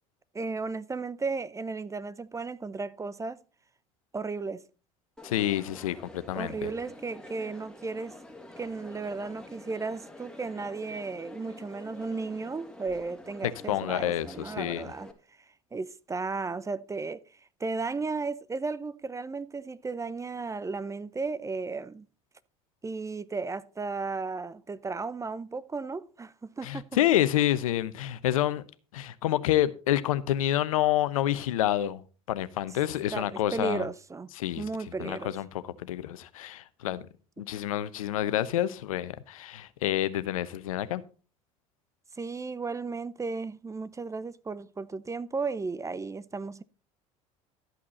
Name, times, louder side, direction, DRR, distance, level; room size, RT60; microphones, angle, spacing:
voice 1, 0.3-3.4 4.1-4.6 6.4-8.2 8.6-15.1 15.7-17.2 17.6-22.1 22.8-26.8 33.1-34.3 34.6-35.3 42.1-46.6, right 4 dB, 15° right, 0.7 m, -34 dB
voice 2, 5.2-6.7 13.7-14.9 26.6-28.6 28.9-32.0 32.3-33.9 34.4-34.6 35.0-35.5 35.8-37.1 37.4-41.0, left 12 dB, 80° left, 0.8 m, -28 dB
Crowd, 5.2-15.1, left 2 dB, 5° left, 2.3 m, -48 dB
13.0 x 8.5 x 4.2 m
hypercardioid pair, 70°, 18 cm